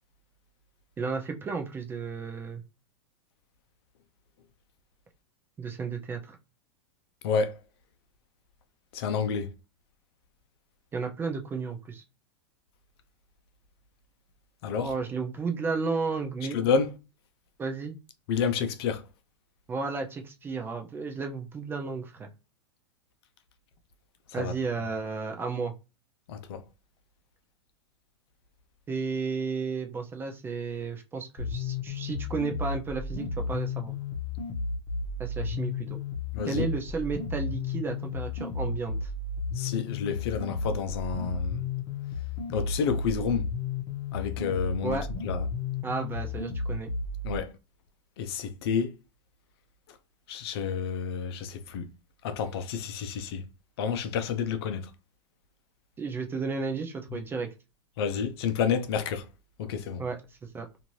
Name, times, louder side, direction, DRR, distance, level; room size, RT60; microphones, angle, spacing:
voice 1, 1.0-2.6 5.6-6.4 10.9-12.0 14.8-16.6 17.6-17.9 19.7-22.3 24.3-25.7 28.9-33.9 35.2-36.0 36.5-39.1 44.8-45.1 45.8-46.9 56.0-57.5 60.0-60.2 60.4-60.7, right 4 dB, 15° right, 0.4 m, -33 dB
voice 2, 7.2-7.6 8.9-9.5 14.6-14.9 16.5-16.9 18.3-19.0 24.3-24.5 26.3-26.6 36.3-36.7 39.5-41.6 42.5-43.5 44.1-45.5 47.2-47.5 48.2-48.9 50.3-51.9 52.2-53.4 53.8-54.9 58.0-59.3 59.6-60.0, left 6 dB, 60° left, 0.6 m, -29 dB
sound 1, 31.4-47.4, left 4 dB, 35° left, 0.9 m, -33 dB
2.6 x 2.6 x 3.0 m
hypercardioid pair, 135°, 15 cm